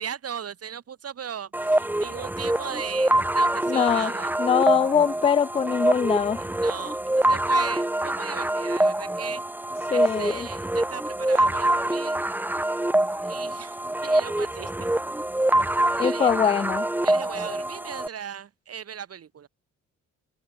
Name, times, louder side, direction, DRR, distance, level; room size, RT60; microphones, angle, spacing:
voice 1, 0.0-4.3 6.4-9.4 9.9-12.2 13.2-14.7 15.9-16.4 17.0-19.5, right 8 dB, 50° right, 3.3 m, -38 dB
sound 1, 1.5-18.1, right 1 dB, 5° right, 1.1 m, -25 dB
voice 2, 3.7-4.1 4.4-6.4 9.9-10.5 16.0-16.9, left 7 dB, 20° left, 0.4 m, -22 dB
cardioid pair, 90°, 30 cm